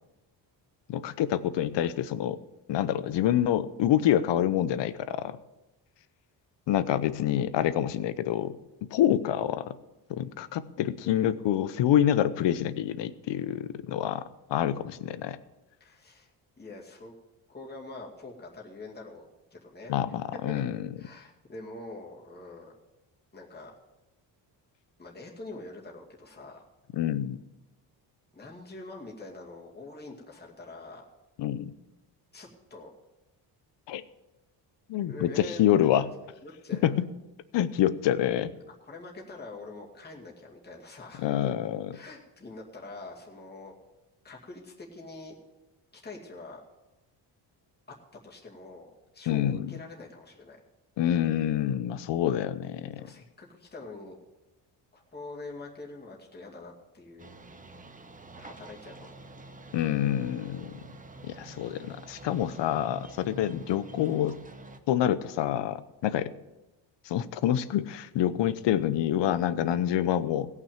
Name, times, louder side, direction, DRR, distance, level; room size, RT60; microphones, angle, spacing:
voice 1, 0.9-2.4 2.7-5.4 6.7-8.5 8.9-9.7 10.1-14.2 14.5-15.4 19.9-20.8 26.9-27.4 31.4-31.7 33.9-34.0 34.9-36.1 36.8-37.1 37.5-38.5 41.2-42.0 49.3-49.7 51.0-52.9 59.7-60.7 61.3-64.4 64.9-66.3 67.1-70.5, left 11 dB, 75° left, 14 dB, 0.8 m, -27 dB
voice 2, 15.8-16.3 16.6-17.1 17.5-19.2 19.5-19.9 20.5-20.6 21.0-22.7 23.3-23.7 25.0-26.7 28.3-31.0 32.3-32.9 35.0-36.0 36.4-37.0 38.8-41.4 41.9-43.7 44.2-45.4 46.0-46.6 48.2-50.6 53.0-54.2 54.9-57.3 58.4-59.1, left 2 dB, 20° left, -2 dB, 2.3 m, -45 dB
sound 1, 57.2-64.8, right 2 dB, 20° right, 0.9 m, -47 dB
17.0 x 6.0 x 7.3 m, 1.0 s
cardioid pair, 105°, 43 cm